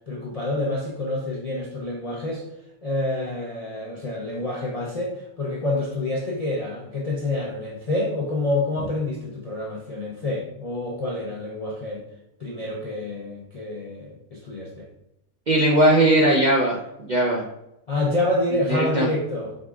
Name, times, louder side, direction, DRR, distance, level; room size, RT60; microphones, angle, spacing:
voice 1, 0.1-2.5 2.8-12.0 12.4-14.9 17.9-19.6, left 2 dB, 50° left, -3 dB, 0.4 m, -27 dB
voice 2, 15.5-17.5 18.7-19.1, right 1 dB, 55° right, -2 dB, 0.5 m, -19 dB
5.1 x 2.5 x 3.5 m, 0.85 s
omnidirectional pair, 1.5 m